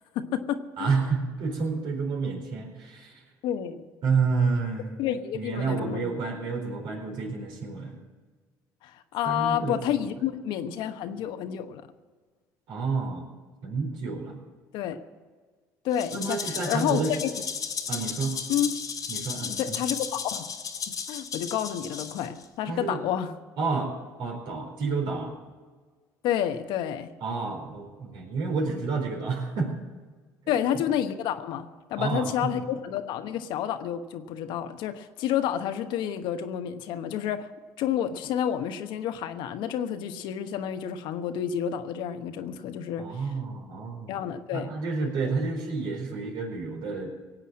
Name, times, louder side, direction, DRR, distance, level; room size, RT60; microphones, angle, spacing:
voice 1, 0.1-1.0 3.4-3.9 5.0-6.1 8.8-11.9 14.7-15.0 15.8-17.3 18.5-18.7 19.5-20.5 20.9-23.3 26.2-27.1 30.5-37.5 37.8-43.0 44.1-44.7, left 10 dB, 75° left, 8 dB, 1.1 m, -30 dB
voice 2, 0.8-3.2 4.0-5.1 5.3-8.0 9.2-10.1 12.7-13.2 13.6-14.4 16.1-17.2 17.9-18.4 19.1-19.9 22.7-23.0 23.6-23.9 24.2-25.3 27.2-29.7 30.4-30.6 32.0-32.6 43.0-44.2 44.5-47.1, right 4 dB, 70° right, 1 dB, 4.2 m, -30 dB
Rattle (instrument), 15.9-22.4, left 6 dB, 50° left, 1.7 m, -34 dB
18.0 x 8.3 x 7.4 m, 1.4 s
supercardioid pair, 75°, 8 cm